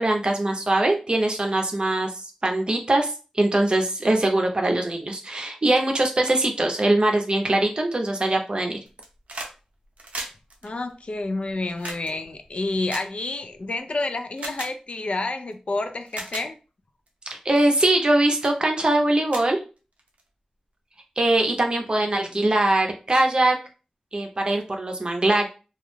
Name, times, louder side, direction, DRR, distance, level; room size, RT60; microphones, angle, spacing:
voice 1, 0.0-8.8 17.3-19.6 21.2-23.6 24.1-25.5, right 2 dB, 45° right, 0.6 m, -22 dB
sound 1, 8.9-9.6 9.8-13.7 14.4-14.7 15.5-15.6 16.0-16.5 17.1-17.3 17.8-18.1 18.4-18.6 18.9-19.0 19.3-20.2 21.4-21.5, right 2 dB, 85° right, 0.5 m, -37 dB
voice 2, 10.6-16.5 22.2-22.5, left 2 dB, 60° left, 0.3 m, -29 dB
2.3 x 2.0 x 3.1 m
wide cardioid pair, 80°, 2 cm